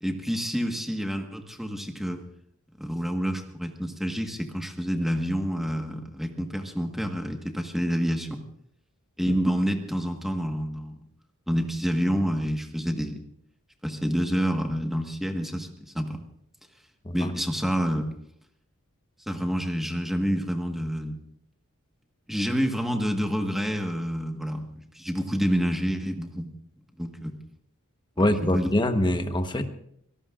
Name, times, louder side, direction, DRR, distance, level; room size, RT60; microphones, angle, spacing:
voice 1, 0.0-2.2 2.8-8.4 9.2-11.0 11.5-13.2 13.8-16.2 17.1-18.1 19.3-21.2 22.3-26.5 27.0-27.3 28.5-28.7, equal, ahead, 3 dB, 1.4 m, -28 dB
voice 2, 28.2-29.6, left 1 dB, 20° left, 7 dB, 1.1 m, -24 dB
25.0 x 18.0 x 2.5 m, 0.71 s
head